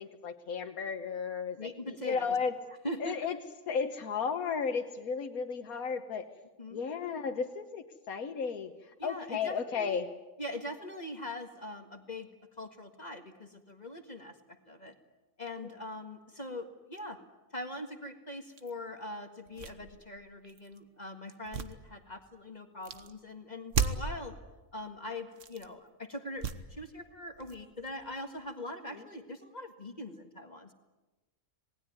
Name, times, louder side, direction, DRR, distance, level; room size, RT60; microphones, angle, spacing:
voice 1, 0.0-2.5 3.0-3.4 3.7-6.3 6.7-10.1, left 6 dB, 90° left, 5 dB, 1.6 m, -34 dB
voice 2, 1.6-2.4 2.8-3.2 6.6-6.8 9.0-10.1 10.4-12.3 12.6-14.3 14.7-14.9 15.4-17.2 17.5-24.3 24.7-30.7, left 1 dB, 30° left, 6 dB, 1.9 m, -42 dB
sound 1, 18.6-18.7 19.4-20.8 21.3-22.4 22.8-23.1 23.7-24.2 25.3-25.7 26.3-26.9 27.3-28.5, right 6 dB, 60° right, 1.6 m, -36 dB
27.5 x 20.0 x 9.6 m, 1.1 s
omnidirectional pair, 1.5 m